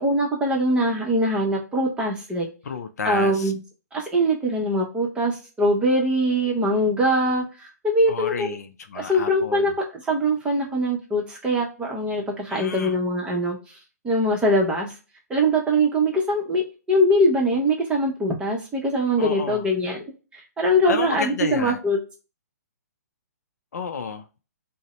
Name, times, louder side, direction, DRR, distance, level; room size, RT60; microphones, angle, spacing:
voice 1, 0.0-2.5 3.0-3.6 3.9-8.6 8.9-9.7 10.0-13.6 14.0-14.9 15.3-20.0 20.3-22.0, equal, 10° right, 0.7 m, -22 dB
voice 2, 2.6-3.5 8.1-9.7 12.5-13.0 19.2-19.6 20.9-21.8 23.7-24.2, left 6 dB, 65° left, 0.5 m, -31 dB
2.6 x 2.1 x 3.0 m
hypercardioid pair, 135°, 9 cm